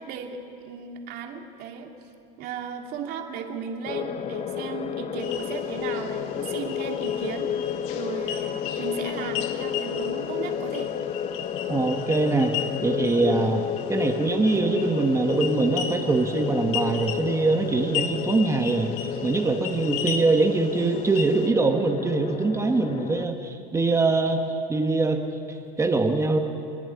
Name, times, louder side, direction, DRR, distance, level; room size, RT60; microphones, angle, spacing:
voice 1, 0.0-2.1 2.4-10.9, right 6 dB, 55° right, 2 dB, 2.7 m, -36 dB
sound 1, 3.8-23.3, left 9 dB, 35° left, 0.7 m, -31 dB
sound 2, 5.2-21.5, left 9 dB, 75° left, 1.6 m, -37 dB
voice 2, 11.7-12.6 12.8-13.6 13.9-18.9 19.2-26.4, right 3 dB, 15° right, 3 dB, 1.4 m, -23 dB
29.5 x 11.0 x 9.7 m, 2.7 s
cardioid pair, 135°, 20 cm